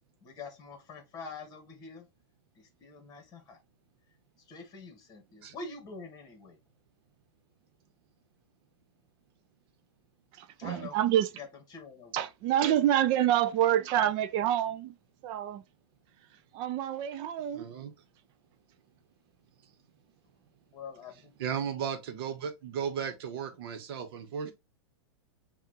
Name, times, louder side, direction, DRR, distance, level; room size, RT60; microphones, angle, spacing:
voice 1, 0.2-2.1 2.5-3.6 4.5-6.6 10.6-11.0 11.4-12.1 20.7-21.3, left 4 dB, 25° left, 1.4 m, -45 dB
voice 2, 10.3-11.3 12.1-15.0 15.2-15.6 16.5-17.7, right 11 dB, 35° right, 0.4 m, -27 dB
voice 3, 17.5-17.9 19.6-19.8 21.4-24.5, right 7 dB, 60° right, 1.1 m, -35 dB
5.7 x 2.4 x 2.9 m
hypercardioid pair, 140°, 14 cm